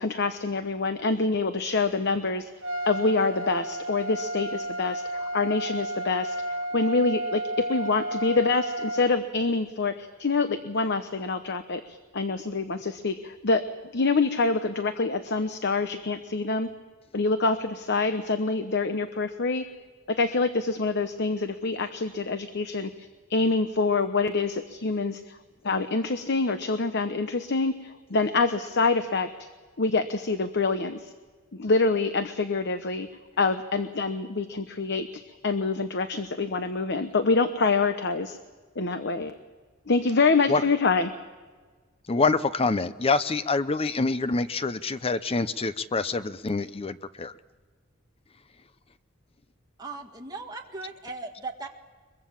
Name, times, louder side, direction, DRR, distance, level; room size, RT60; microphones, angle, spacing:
voice 1, 0.0-2.5 2.9-6.3 6.7-13.6 13.9-16.7 17.1-19.7 20.1-25.4 25.6-29.3 29.8-31.1 31.5-33.1 33.4-38.4 38.8-39.4 39.9-41.1, left 3 dB, 60° left, 9 dB, 1.0 m, -26 dB
Trumpet, 2.6-9.1, right 1 dB, 70° right, 1.5 m, -32 dB
voice 2, 42.1-47.3, left 3 dB, 30° left, 14 dB, 0.6 m, -26 dB
voice 3, 49.8-51.7, right 3 dB, 20° right, 1 dB, 2.0 m, -38 dB
23.0 x 22.5 x 7.3 m, 1.4 s
head